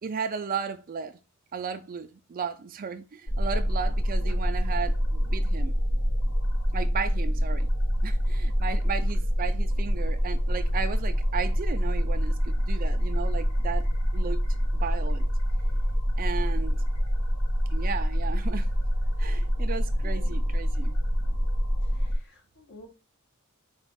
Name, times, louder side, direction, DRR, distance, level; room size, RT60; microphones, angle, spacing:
voice 1, 0.0-1.2 1.5-5.8 6.7-7.7 8.0-13.9 14.1-14.4 14.8-15.3 16.2-16.8 17.7-18.7 19.2-20.9, right 6 dB, 40° right, 0.4 m, -35 dB
sound 1, 3.3-22.2, equal, 80° left, 1.1 m, -26 dB
voice 2, 20.0-20.5 21.8-22.9, left 2 dB, 55° left, 1.0 m, -51 dB
4.4 x 2.4 x 3.9 m
head